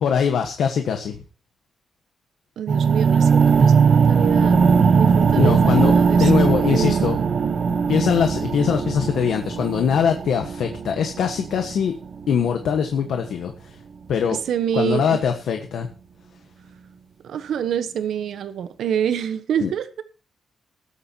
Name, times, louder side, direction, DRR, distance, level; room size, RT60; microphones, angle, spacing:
voice 1, 0.0-1.1 5.4-7.2 7.6-11.9 12.3-13.8 14.1-14.4 14.7-15.9 19.6-19.7, left 7 dB, 80° left, 1.4 m, -22 dB
voice 2, 2.6-4.7 4.9-6.3 6.7-7.1 14.3-15.2 17.2-20.0, right 9 dB, 85° right, 1.1 m, -26 dB
sound 1, 2.7-12.6, right 5 dB, 50° right, 1.1 m, -19 dB
20.0 x 8.5 x 2.9 m
wide cardioid pair, 130°, 0 cm